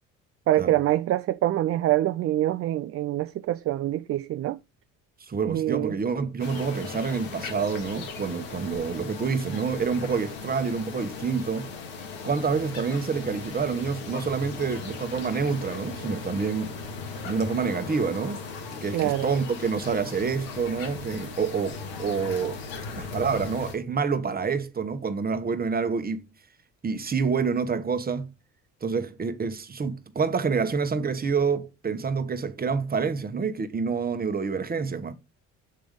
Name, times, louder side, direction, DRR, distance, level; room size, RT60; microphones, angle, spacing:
voice 1, 0.5-4.6 5.5-5.9 18.9-19.3, right 14 dB, 45° right, 0.4 m, -25 dB
voice 2, 5.3-11.7 12.2-16.7 17.3-18.4 18.8-22.6 23.0-26.3 26.8-28.3 28.8-35.1, right 5 dB, 25° right, 1.1 m, -27 dB
sound 1, 6.4-23.7, left 4 dB, 80° left, 2.0 m, -38 dB
sound 2, 14.0-18.6, left 6 dB, 45° left, 1.7 m, -52 dB
7.8 x 3.4 x 5.2 m
supercardioid pair, 75°, 33 cm